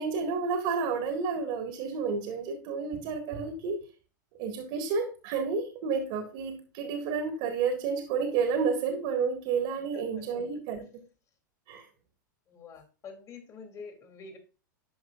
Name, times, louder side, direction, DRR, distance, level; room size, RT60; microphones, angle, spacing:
voice 1, 0.0-3.8 4.4-10.9 11.7-11.9, right 5 dB, 55° right, 4 dB, 1.9 m, -30 dB
voice 2, 9.9-10.2 12.5-14.4, left 5 dB, 30° left, 4 dB, 2.5 m, -47 dB
12.0 x 5.3 x 2.5 m, 0.35 s
hypercardioid pair, 100°, 11 cm